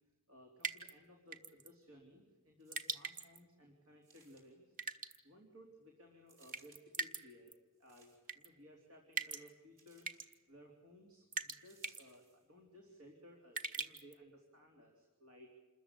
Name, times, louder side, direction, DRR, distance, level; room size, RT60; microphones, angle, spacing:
voice 1, 0.3-4.8 5.2-7.5 7.8-10.1 10.5-15.5, equal, 85° right, 1 dB, 3.6 m, -60 dB
sound 1, 0.6-0.9 1.3-1.7 2.7-3.4 4.8-5.2 6.5-7.2 7.5-7.6 8.3-8.5 9.2-9.5 10.0-10.3 11.3-11.6 11.8-12.0 13.6-14.1, right 4 dB, 40° right, 1.4 m, -41 dB
sound 2, 2.6-3.2 4.0-4.7 6.3-6.8 7.7-8.5 9.8-10.3 11.6-12.5 13.2-13.3, right 3 dB, 60° right, 4.9 m, -67 dB
27.5 x 14.0 x 10.0 m, 1.3 s
head